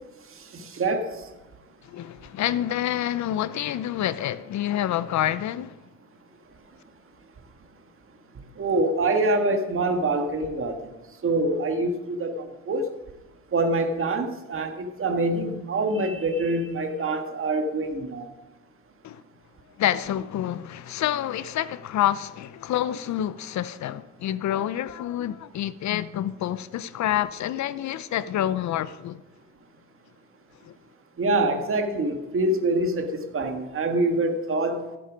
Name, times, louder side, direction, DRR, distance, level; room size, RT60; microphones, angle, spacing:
voice 1, 0.5-1.2 8.6-10.7 11.2-12.9 13.5-18.3 31.2-34.9, right 2 dB, 45° right, 1.8 m, -25 dB
voice 2, 1.9-5.8 19.0-19.2 19.8-29.2 30.6-30.7, left 11 dB, 65° left, 0.6 m, -28 dB
15.0 x 8.8 x 5.1 m
cardioid pair, 90°, 30 cm